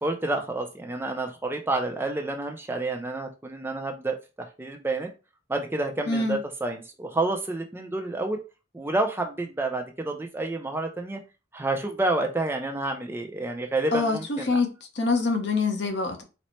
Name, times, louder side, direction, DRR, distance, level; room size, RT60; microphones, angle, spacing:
voice 1, 0.0-4.1 4.6-5.1 5.5-8.4 8.7-11.2 11.5-14.6, right 2 dB, 10° right, 0.4 m, -29 dB
voice 2, 6.1-6.4 13.9-14.7 15.0-16.2, left 3 dB, 60° left, 0.8 m, -25 dB
4.1 x 2.0 x 3.0 m
head